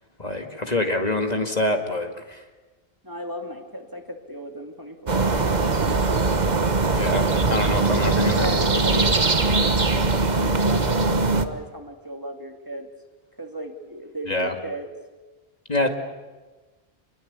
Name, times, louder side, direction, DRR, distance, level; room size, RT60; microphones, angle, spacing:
voice 1, 0.2-2.4 6.9-8.4 14.3-14.5 15.7-15.9, left 2 dB, 40° left, 4 dB, 2.3 m, -25 dB
voice 2, 3.0-6.1 8.0-9.8 10.4-12.9 13.4-14.9, equal, 20° right, 4 dB, 2.5 m, -34 dB
sound 1, 5.1-11.5, right 3 dB, 45° right, 1.4 m, -21 dB
27.0 x 22.0 x 8.5 m, 1.2 s
omnidirectional pair, 1.0 m